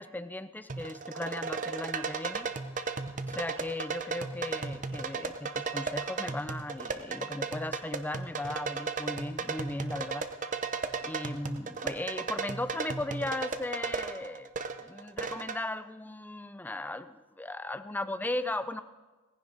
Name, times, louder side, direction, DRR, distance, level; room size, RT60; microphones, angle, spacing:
voice 1, 0.0-2.5 3.3-10.3 11.0-14.5 14.8-18.8, left 1 dB, 10° left, 12 dB, 0.4 m, -37 dB
sound 1, 0.7-15.6, right 4 dB, 35° right, 0.7 m, -35 dB
18.0 x 15.5 x 3.9 m, 1.3 s
head